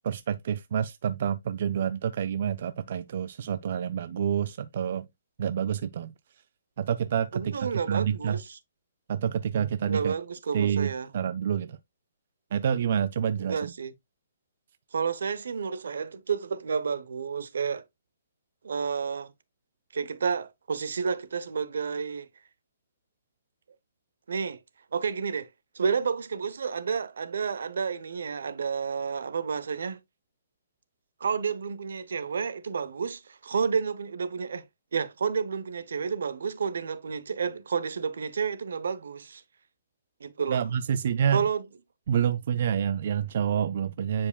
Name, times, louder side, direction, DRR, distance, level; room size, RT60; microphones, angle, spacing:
voice 1, 0.0-5.1 5.4-6.1 6.8-8.4 9.1-10.1 10.5-11.8 12.5-13.7 40.5-41.4 42.1-44.3, right 8 dB, 45° right, 0.3 m, -28 dB
voice 2, 7.3-8.6 9.9-11.1 13.4-13.9 14.9-17.8 18.6-19.3 19.9-22.3 24.3-24.6 24.9-25.5 25.7-30.0 31.2-34.6 34.9-39.4 40.2-40.7 41.3-41.6, right 6 dB, 75° right, 0.8 m, -30 dB
9.6 x 4.8 x 2.3 m
hypercardioid pair, 170°, 0 cm